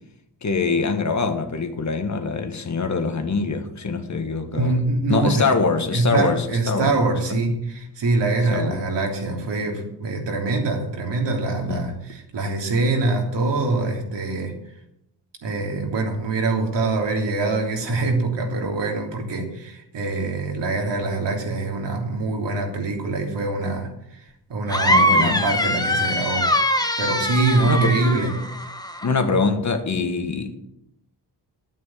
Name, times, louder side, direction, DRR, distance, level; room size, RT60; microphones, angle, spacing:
voice 1, 0.4-4.7 5.1-6.9 8.5-8.8 11.7-11.9 24.9-25.4 27.6-28.0 29.0-30.6, left 4 dB, 40° left, 1.6 m, -24 dB
voice 2, 4.5-5.6 5.9-14.5 15.4-26.5 27.0-28.3, right 3 dB, 75° right, 3.2 m, -24 dB
sound 1, 24.7-29.1, left 1 dB, 10° left, 1.2 m, -22 dB
11.5 x 9.3 x 7.3 m
cardioid pair, 110°, 43 cm